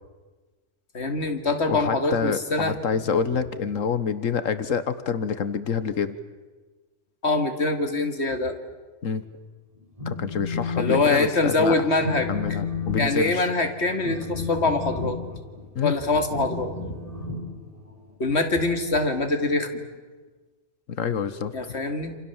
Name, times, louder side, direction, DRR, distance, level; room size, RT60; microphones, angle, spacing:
voice 1, 0.9-2.8 7.2-8.6 10.8-12.3 13.0-15.2 15.8-17.3 18.2-19.8 21.5-22.2, left 2 dB, 60° left, 6 dB, 2.6 m, -24 dB
voice 2, 1.7-6.1 9.0-9.2 10.0-11.9 12.3-13.5 15.7-16.0 20.9-21.7, left 6 dB, 90° left, 12 dB, 1.6 m, -27 dB
Telephone, 9.8-11.0 11.3-11.6 12.0-18.1, left 5 dB, 25° right, 5.6 m, -32 dB
28.5 x 27.5 x 7.3 m, 1.3 s
omnidirectional pair, 1.3 m